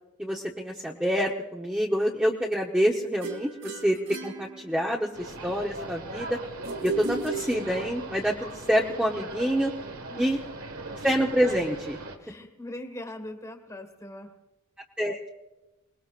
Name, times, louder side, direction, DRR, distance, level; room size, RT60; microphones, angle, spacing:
voice 1, 0.2-4.0 4.2-6.4 6.8-9.7 10.2-10.4 11.0-12.0 15.0-15.3, equal, 5° right, -2 dB, 1.0 m, -27 dB
sound 1, 3.2-5.2 6.6-8.2, right 3 dB, 60° right, 2.5 m, -35 dB
sound 2, 5.1-12.2, right 2 dB, 80° right, 1.7 m, -39 dB
voice 2, 12.2-14.4, left 1 dB, 15° left, 5 dB, 1.7 m, -41 dB
29.0 x 20.0 x 2.5 m, 1.0 s
head